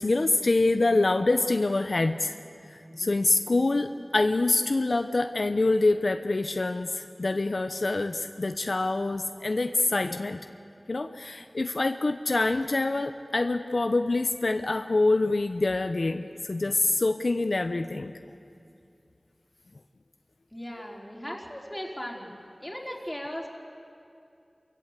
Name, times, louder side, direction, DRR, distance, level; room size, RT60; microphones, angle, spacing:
voice 1, 0.0-2.4 2.7-10.4 10.9-18.1, left 2 dB, 70° left, 8 dB, 0.6 m, -25 dB
voice 2, 20.5-22.3 22.6-23.5, equal, 15° left, -2 dB, 4.0 m, -37 dB
29.0 x 15.0 x 8.2 m, 2.5 s
wide cardioid pair, 45°, 0 cm